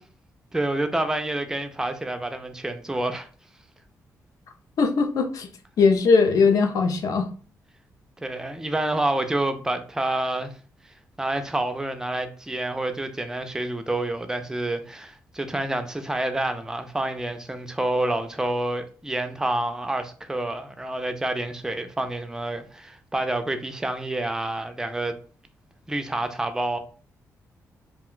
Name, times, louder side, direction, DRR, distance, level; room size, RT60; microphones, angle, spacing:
voice 1, 0.5-3.3 8.2-10.5 11.2-25.1 25.9-26.8, right 1 dB, 10° right, 0.4 m, -28 dB
voice 2, 4.8-5.5 5.8-7.3, left 4 dB, 70° left, 0.5 m, -20 dB
2.4 x 2.2 x 3.7 m
wide cardioid pair, 145°, 6 cm